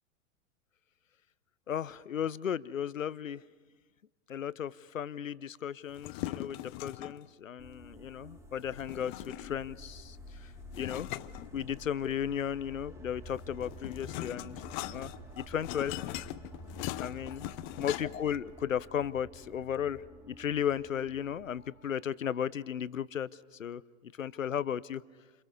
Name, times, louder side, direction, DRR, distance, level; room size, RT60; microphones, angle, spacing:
voice 1, 1.7-3.4 4.3-10.2 10.4-10.5 10.7-11.1 11.5-14.5 14.9-16.0 17.0-23.3 23.6-25.0, left 9 dB, 80° left, 19 dB, 0.8 m, -35 dB
sound 1, 5.9-7.3 8.7-9.7 10.7-12.1 13.3-18.4, left 17 dB, 35° left, 0.8 m, -40 dB
sound 2, 7.6-21.7, equal, 5° right, 2.3 m, -50 dB
29.5 x 27.5 x 5.4 m, 1.3 s
figure-of-eight pair, 95°, 39 cm